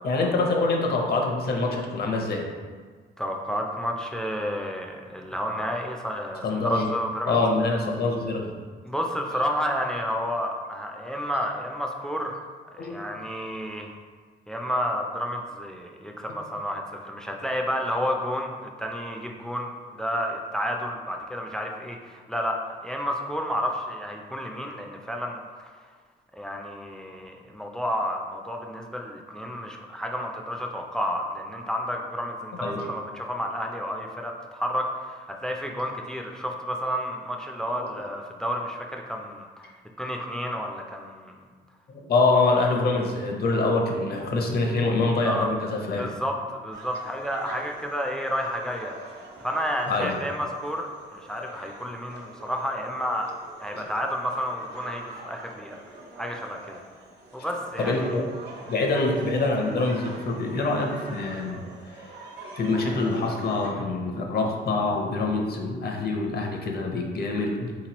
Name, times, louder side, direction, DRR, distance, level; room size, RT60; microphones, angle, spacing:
voice 1, 0.0-2.5 6.4-6.9 7.3-8.5 12.8-13.0 32.6-32.8 37.7-37.9 41.9-46.1 49.9-50.2 53.7-53.8 57.8-58.3 58.7-61.6 62.6-67.7, left 3 dB, 50° left, 1 dB, 0.7 m, -25 dB
voice 2, 3.2-7.4 8.9-12.4 12.7-13.9 14.5-25.7 26.3-39.7 40.0-41.4 45.2-45.5 45.9-49.0 49.4-53.3 53.6-55.8 56.2-56.8 57.3-58.2, equal, 5° left, 1 dB, 0.3 m, -31 dB
sound 1, 46.7-63.7, right 2 dB, 55° right, 0.8 m, -44 dB
3.7 x 3.0 x 2.9 m, 1.5 s
cardioid pair, 90°, 20 cm